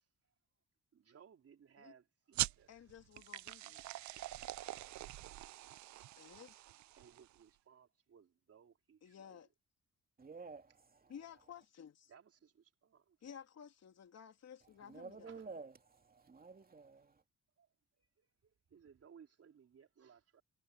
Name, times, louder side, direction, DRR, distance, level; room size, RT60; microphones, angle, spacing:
voice 1, 0.9-2.8 6.8-9.4 12.1-13.2 15.2-15.5 17.6-17.7 18.0-20.4, right 7 dB, 50° right, 4.1 m, -63 dB
sound 1, 2.3-7.4, right 15 dB, 70° right, 0.6 m, -43 dB
voice 2, 2.7-3.9 6.2-6.6 9.0-9.5 11.1-12.1 13.2-15.3, left 8 dB, 60° left, 3.4 m, -54 dB
voice 3, 10.2-11.1 14.8-17.2, right 4 dB, 30° right, 2.8 m, -52 dB
cardioid pair, 90°, 30 cm